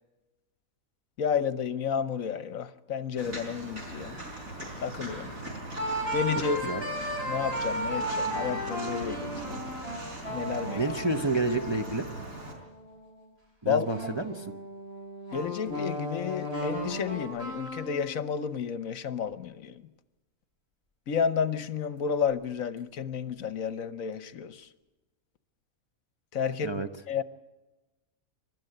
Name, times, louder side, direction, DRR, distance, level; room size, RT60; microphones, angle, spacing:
voice 1, 1.2-4.2 4.8-5.3 6.1-6.7 7.3-9.8 10.3-10.8 13.6-13.9 15.3-19.8 21.1-24.7 26.3-27.2, left 7 dB, 70° left, 14 dB, 1.3 m, -31 dB
Walk footsteps, 3.2-12.5, right 1 dB, 70° right, 5.2 m, -40 dB
sound 1, 5.8-13.1 13.8-18.3, equal, 45° right, 6.3 m, -35 dB
voice 2, 10.8-12.0 13.6-14.5 26.6-26.9, right 2 dB, 25° right, 4 dB, 0.8 m, -29 dB
28.0 x 12.5 x 7.9 m, 1.1 s
omnidirectional pair, 1.5 m